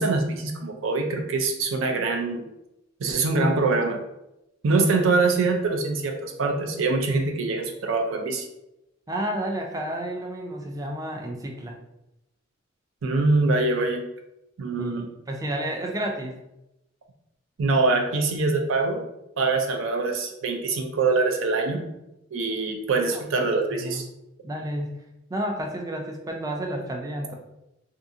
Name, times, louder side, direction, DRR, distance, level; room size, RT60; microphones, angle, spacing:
voice 1, 0.0-2.4 3.0-4.0 4.6-8.5 13.0-14.0 14.6-15.1 17.6-19.0 19.4-21.8 22.3-24.0, right 3 dB, 80° right, 3 dB, 0.4 m, -24 dB
voice 2, 9.1-11.8 14.8-16.4 22.9-24.0 24.4-25.0 25.3-27.3, right 1 dB, 20° right, 2 dB, 0.3 m, -31 dB
2.5 x 2.4 x 2.6 m, 0.89 s
head